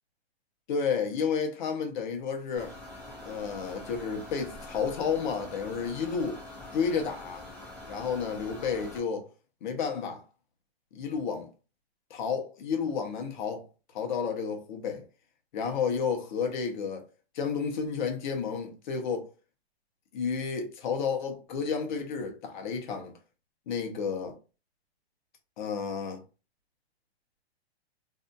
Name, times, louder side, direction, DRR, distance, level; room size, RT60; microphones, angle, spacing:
voice 1, 0.7-2.8 3.2-6.4 6.7-7.4 7.8-9.3 9.6-10.2 10.9-11.5 12.1-13.7 13.9-15.1 15.5-17.1 17.3-19.3 20.1-23.1 23.7-24.4 25.6-26.2, left 6 dB, 45° left, 0.9 m, -31 dB
sound 1, 2.6-9.0, left 1 dB, 5° left, 0.4 m, -45 dB
2.7 x 2.6 x 2.2 m
hypercardioid pair, 150°, 33 cm